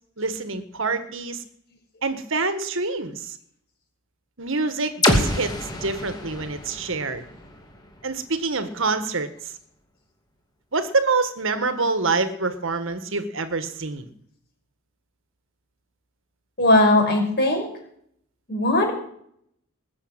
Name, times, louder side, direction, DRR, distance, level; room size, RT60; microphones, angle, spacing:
voice 1, 0.2-1.4 2.0-3.4 4.4-5.5 5.8-7.2 8.0-9.5 10.7-14.1, right 3 dB, 60° right, 10 dB, 1.6 m, -26 dB
sound 1, 5.0-8.9, left 1 dB, 20° left, 2.5 m, -27 dB
voice 2, 16.6-17.7 18.5-18.9, left 2 dB, 45° left, 2 dB, 5.5 m, -18 dB
21.0 x 7.2 x 8.9 m, 0.66 s
head